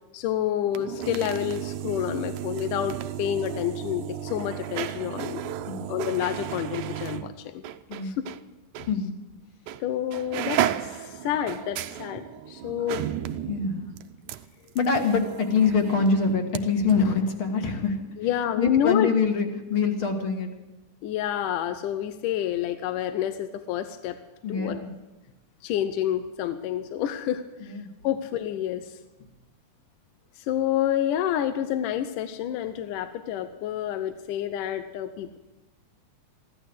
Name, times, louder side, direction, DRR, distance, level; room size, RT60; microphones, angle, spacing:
voice 1, 0.1-5.4 5.9-7.6 8.0-8.2 9.8-13.0 18.2-19.1 21.0-24.2 24.5-24.8 25.6-27.7 28.0-29.0 30.4-35.4, left 11 dB, 85° left, 10 dB, 2.4 m, -28 dB
sound 1, 0.6-8.4 8.8-8.9 9.7-9.9 10.1-16.6 16.9-17.0, right 11 dB, 80° right, 2.2 m, -33 dB
voice 2, 7.9-8.2 8.8-9.2 13.5-13.9 14.7-18.0 18.6-20.5 24.4-24.9 27.6-27.9, left 4 dB, 45° left, 5 dB, 2.2 m, -25 dB
15.5 x 11.5 x 7.9 m, 1.1 s
omnidirectional pair, 3.6 m